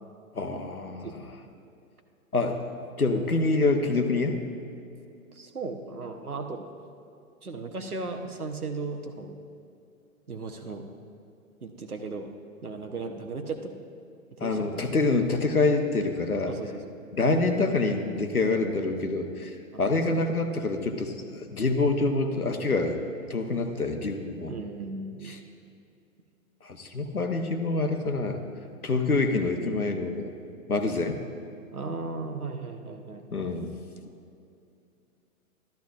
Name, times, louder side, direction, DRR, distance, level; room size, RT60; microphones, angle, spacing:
voice 1, 0.3-1.1 2.3-2.6 3.0-4.5 14.4-16.6 17.1-23.0 23.3-24.5 25.2-25.4 26.6-28.4 28.8-30.3 30.7-31.2 33.3-33.8, left 3 dB, 85° left, 6 dB, 1.1 m, -26 dB
voice 2, 5.3-6.7 7.4-9.4 10.3-10.9 11.6-12.3 12.6-13.7 14.4-14.8 16.5-16.9 19.7-19.8 23.8-23.9 24.5-25.3 31.7-33.3, right 3 dB, 85° right, 6 dB, 1.0 m, -36 dB
13.0 x 13.0 x 2.4 m, 2.6 s
figure-of-eight pair, 115°, 43 cm